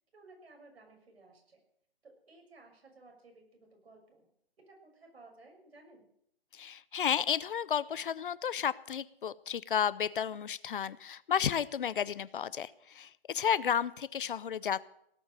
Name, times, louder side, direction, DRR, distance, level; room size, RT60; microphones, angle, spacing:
voice 1, 0.1-1.6 2.0-4.3 4.6-6.1 13.6-13.7, right 2 dB, 85° right, 3 dB, 6.4 m, -57 dB
voice 2, 6.5-14.8, left 8 dB, 55° left, 19 dB, 0.7 m, -32 dB
18.0 x 7.8 x 9.1 m, 0.75 s
hypercardioid pair, 165°, 31 cm